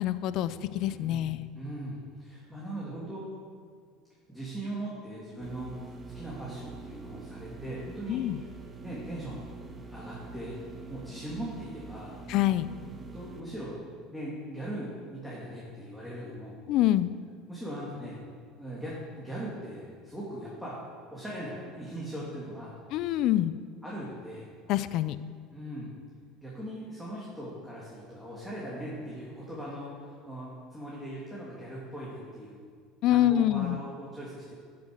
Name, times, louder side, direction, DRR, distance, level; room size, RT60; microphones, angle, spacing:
voice 1, 0.0-1.5 8.1-8.4 12.3-12.7 16.7-17.1 22.9-23.5 24.7-25.2 33.0-33.8, left 13 dB, 60° left, 14 dB, 0.5 m, -26 dB
voice 2, 0.9-3.3 4.3-8.2 8.8-9.5 9.9-10.6 10.9-12.1 13.1-13.8 14.1-16.6 17.5-18.2 18.6-20.8 21.1-22.7 23.8-24.5 25.5-25.9 26.4-29.9 30.2-32.6 33.1-34.5, right 1 dB, ahead, -7 dB, 2.9 m, -40 dB
sound 1, 5.4-13.4, right 3 dB, 20° right, 1.3 m, -45 dB
11.5 x 7.1 x 6.4 m, 2.1 s
supercardioid pair, 105°, 0 cm